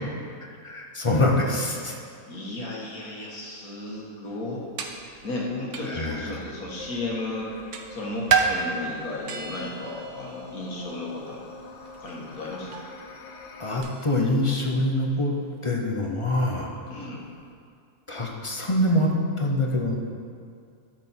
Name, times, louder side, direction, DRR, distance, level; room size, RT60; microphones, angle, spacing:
voice 1, 0.6-2.0 5.9-6.3 13.6-15.3 15.6-16.7 18.1-19.1 19.4-20.0, left 1 dB, 25° left, 0 dB, 0.7 m, -24 dB
voice 2, 2.3-4.7 5.2-7.6 7.9-11.5 11.9-12.8 16.9-17.3, left 2 dB, 75° left, -3 dB, 2.1 m, -34 dB
sound 1, 4.3-17.5, right 5 dB, 60° right, 1.0 m, -34 dB
sound 2, 6.8-13.8, left 4 dB, 55° left, 1.0 m, -44 dB
12.5 x 6.4 x 4.4 m, 2.3 s
omnidirectional pair, 1.5 m